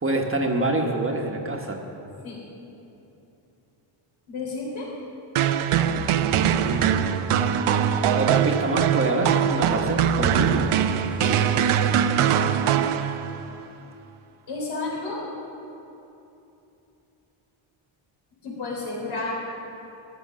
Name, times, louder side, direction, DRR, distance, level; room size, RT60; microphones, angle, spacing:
voice 1, 0.0-1.8 6.6-7.3 8.1-10.7, right 2 dB, 25° right, 2 dB, 1.3 m, -26 dB
voice 2, 4.3-4.9 11.2-11.4 14.5-15.2 18.4-19.3, left 3 dB, 70° left, -3 dB, 4.1 m, -31 dB
sound 1, 5.4-13.5, right 8 dB, 80° right, 0.8 m, -22 dB
15.0 x 12.0 x 6.3 m, 2.9 s
cardioid pair, 110°, 50 cm